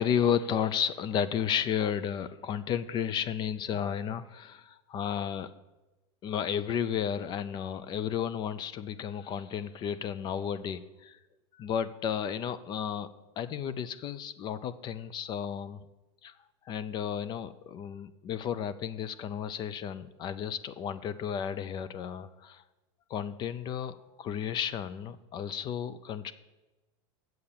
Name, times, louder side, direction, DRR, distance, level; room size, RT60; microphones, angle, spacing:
voice 1, 0.0-5.5 6.2-11.2 11.6-13.1 13.4-15.8 16.2-16.3 16.7-22.6 23.1-26.3, left 8 dB, 30° left, 14 dB, 0.4 m, -33 dB
7.8 x 6.8 x 7.3 m, 1.1 s
supercardioid pair, 135°, 15 cm